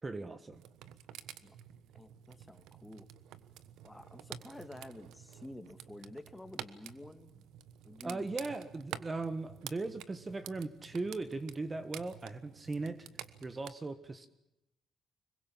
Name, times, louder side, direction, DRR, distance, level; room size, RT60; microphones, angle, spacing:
voice 1, 0.0-0.6 8.0-13.1 13.4-14.3, right 3 dB, 25° right, 11 dB, 1.6 m, -38 dB
sound 1, 0.5-13.7, right 11 dB, 90° right, 1.2 m, -50 dB
voice 2, 1.9-3.1 3.8-7.5 7.8-8.3, left 1 dB, 10° left, 9 dB, 2.4 m, -50 dB
25.5 x 22.5 x 7.4 m, 0.89 s
cardioid pair, 90°, 0 cm